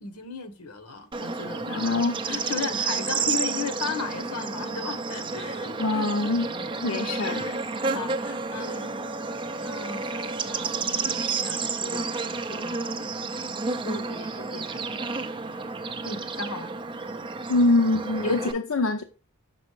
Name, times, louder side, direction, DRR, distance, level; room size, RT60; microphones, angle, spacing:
voice 1, 0.0-8.9 9.6-13.1 13.8-15.2 16.0-16.7, left 5 dB, 85° left, 1.0 m, -37 dB
Bird / Insect, 1.1-18.5, right 4 dB, 20° right, 0.4 m, -31 dB
voice 2, 1.7-2.2 5.8-6.5 6.8-7.4 17.5-19.0, left 2 dB, 65° left, 0.5 m, -24 dB
6.1 x 5.2 x 3.1 m
head